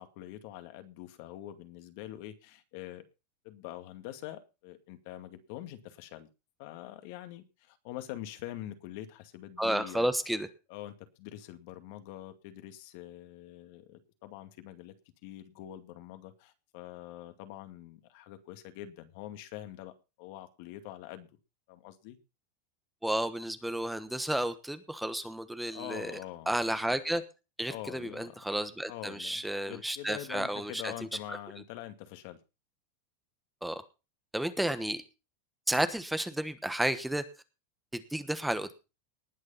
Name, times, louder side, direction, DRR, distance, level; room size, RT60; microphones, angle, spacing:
voice 1, 0.0-3.0 3.4-6.3 6.6-10.1 10.7-14.9 15.2-19.9 20.2-21.3 21.7-22.2 25.7-26.5 27.7-28.3 28.9-32.4, left 13 dB, 60° left, 9 dB, 2.2 m, -44 dB
voice 2, 9.6-10.5 23.0-26.1 26.5-27.2 27.6-30.9 33.6-33.8 34.3-35.0 35.7-37.2 37.9-38.7, right 1 dB, 5° right, 11 dB, 1.2 m, -32 dB
19.0 x 6.6 x 5.7 m, 0.30 s
supercardioid pair, 140°, 0 cm